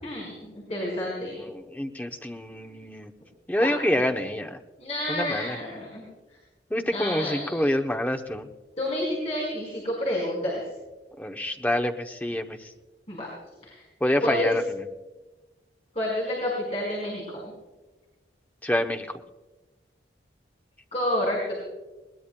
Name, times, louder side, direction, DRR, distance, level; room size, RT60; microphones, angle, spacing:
voice 1, 0.0-1.4 3.6-4.0 4.8-6.1 6.9-7.7 8.8-10.6 13.1-13.3 13.6-13.8 14.2-14.5 15.9-17.5 20.9-21.5, left 1 dB, 35° left, -4 dB, 4.9 m, -29 dB
voice 2, 1.4-3.1 3.5-4.6 5.1-5.6 6.7-8.5 11.2-12.6 14.0-14.6 18.6-19.1, left 1 dB, 10° left, 4 dB, 0.7 m, -27 dB
21.5 x 19.5 x 2.2 m, 1.1 s
head